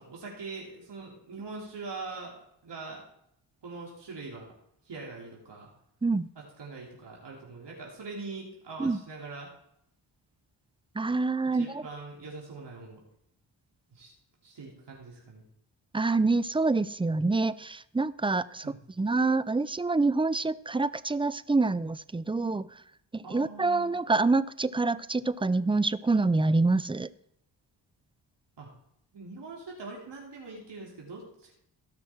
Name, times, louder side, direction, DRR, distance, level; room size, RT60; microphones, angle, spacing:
voice 1, 0.0-3.0 3.6-4.5 4.9-5.7 6.4-9.5 11.4-13.0 13.9-14.1 14.4-15.4 18.6-18.8 23.2-24.0 28.6-28.7 29.1-31.6, right 3 dB, 65° right, -3 dB, 3.4 m, -42 dB
voice 2, 11.0-11.8 15.9-18.7 19.0-22.7 23.1-27.1, right 3 dB, 10° right, 17 dB, 0.5 m, -26 dB
16.5 x 6.1 x 4.6 m, 0.74 s
cardioid pair, 55°, 45 cm